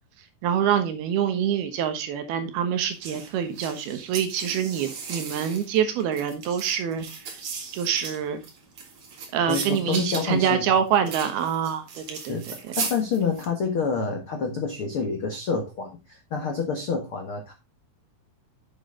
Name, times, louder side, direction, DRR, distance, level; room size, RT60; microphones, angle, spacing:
voice 1, 0.4-7.0 7.7-8.4 9.3-12.4, right 9 dB, 70° right, 8 dB, 3.0 m, -25 dB
sound 1, 3.0-13.5, right 5 dB, 50° right, 2.8 m, -36 dB
voice 2, 9.5-11.1 12.3-17.5, left 5 dB, 70° left, 4 dB, 1.2 m, -28 dB
9.1 x 7.3 x 3.7 m, 0.25 s
omnidirectional pair, 4.8 m